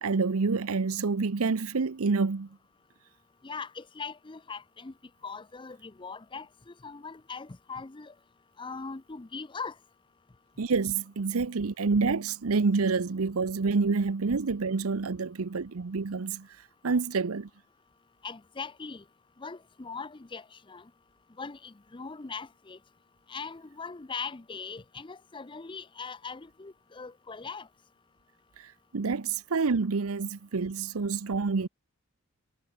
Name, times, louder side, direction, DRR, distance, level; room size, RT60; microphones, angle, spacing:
voice 1, 0.0-2.5 10.6-16.5 16.8-17.5 28.6-31.7, right 4 dB, 75° right, 0.7 m, -28 dB
voice 2, 3.4-4.9 5.2-8.1 8.6-9.7 18.2-19.0 19.4-20.8 21.4-22.8 23.3-27.7, left 5 dB, 20° left, 0.5 m, -40 dB
head